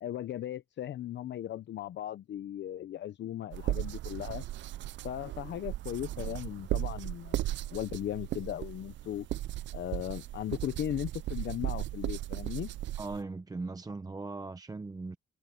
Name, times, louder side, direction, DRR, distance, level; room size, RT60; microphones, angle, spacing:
voice 1, 0.0-4.4 5.0-7.4 7.7-9.3 9.7-12.7, left 11 dB, 65° left, 0.8 m, -37 dB
sound 1, 3.5-13.2, right 14 dB, 65° right, 0.5 m, -36 dB
voice 2, 13.0-15.2, right 3 dB, 20° right, 0.8 m, -39 dB
cardioid pair, 90°, 20 cm